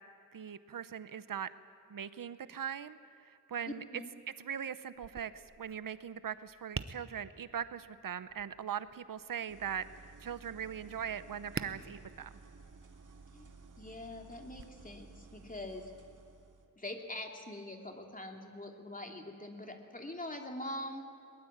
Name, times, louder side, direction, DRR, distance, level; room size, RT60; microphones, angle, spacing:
voice 1, 0.3-1.5 1.9-3.8 4.4-9.9 10.2-12.3, right 8 dB, 90° right, 14 dB, 0.9 m, -40 dB
Tap, 4.9-14.6, right 5 dB, 40° right, 0.9 m, -49 dB
sound 1, 9.5-16.7, right 4 dB, 70° right, 2.2 m, -55 dB
voice 2, 13.3-15.9 16.8-21.0, left 1 dB, 25° left, 3 dB, 2.8 m, -44 dB
22.5 x 20.5 x 8.7 m, 2.7 s
wide cardioid pair, 95°, 32 cm